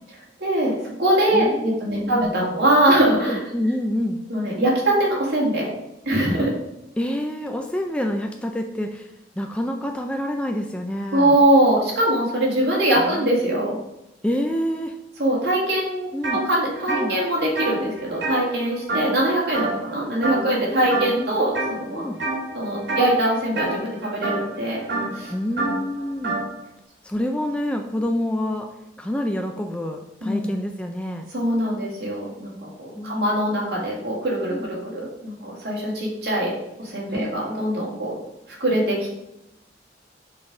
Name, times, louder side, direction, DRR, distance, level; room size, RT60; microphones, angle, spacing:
voice 1, 0.4-0.7 1.0-3.4 4.3-5.7 6.1-6.5 11.1-13.7 15.2-16.1 16.4-22.1 22.5-24.8 25.1-25.3 30.2-30.5 31.3-36.5 36.8-38.2 38.6-39.2, right 1 dB, 65° right, -4 dB, 2.2 m, -22 dB
voice 2, 1.3-2.2 3.2-4.2 7.0-11.3 13.0-13.9 14.2-15.0 16.1-16.4 16.9-17.1 20.9-21.4 21.9-22.2 25.3-26.4 27.0-28.7 29.0-31.3 32.9-33.9 34.5-34.7 37.1-37.3, left 1 dB, 5° left, 3 dB, 0.4 m, -28 dB
sound 1, 16.2-16.4 16.7-19.3 19.5-19.9 20.2-20.6 20.9-21.7 22.2-22.5 22.8-26.5, right 2 dB, 80° right, 2.5 m, -27 dB
5.8 x 4.0 x 4.8 m, 0.88 s
head